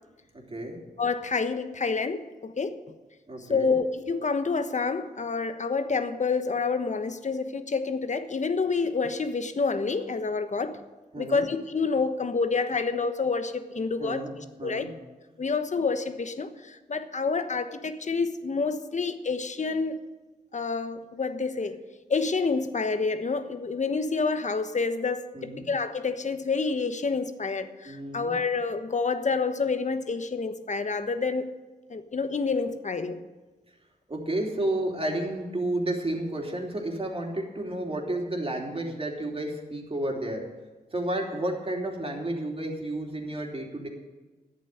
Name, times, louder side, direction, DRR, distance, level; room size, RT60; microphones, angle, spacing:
voice 1, 0.3-0.8 3.3-3.7 11.1-11.5 14.0-14.9 25.3-25.7 27.8-28.4 34.1-40.5 40.9-43.9, right 1 dB, 35° right, 0 dB, 3.2 m, -31 dB
voice 2, 1.0-2.8 3.5-10.8 11.2-14.9 15.4-20.1 20.5-21.8 22.1-31.5 31.9-33.2, left 4 dB, 50° left, 9 dB, 1.1 m, -28 dB
11.0 x 8.4 x 9.1 m, 1.2 s
cardioid pair, 50°, 16 cm